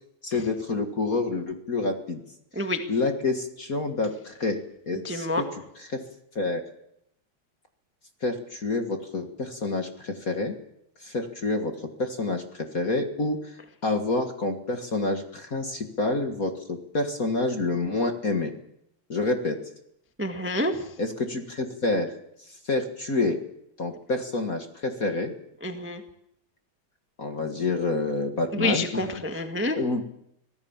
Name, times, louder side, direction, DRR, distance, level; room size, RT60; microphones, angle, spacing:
voice 1, 0.2-2.2 2.9-4.6 4.9-5.5 5.8-6.0 6.3-6.6 8.2-10.5 11.0-13.5 13.8-18.5 19.1-19.6 21.0-22.1 22.6-23.4 23.8-25.3 27.2-29.0 29.7-30.0, left 2 dB, 35° left, 5 dB, 1.7 m, -28 dB
voice 2, 5.0-5.4 20.2-20.8 25.6-26.0 28.5-29.8, left 1 dB, 5° right, 5 dB, 0.9 m, -28 dB
25.5 x 17.5 x 7.3 m, 0.78 s
omnidirectional pair, 3.4 m